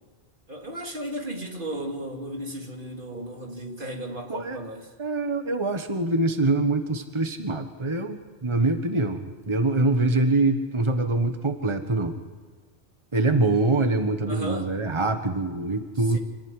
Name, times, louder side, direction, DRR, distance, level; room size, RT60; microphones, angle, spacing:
voice 1, 0.5-4.9 14.3-14.7 15.9-16.2, right 1 dB, 55° right, 2 dB, 3.3 m, -35 dB
voice 2, 5.0-12.1 13.1-16.2, right 2 dB, 30° right, 7 dB, 1.5 m, -24 dB
27.0 x 16.0 x 9.9 m, 1.5 s
omnidirectional pair, 1.1 m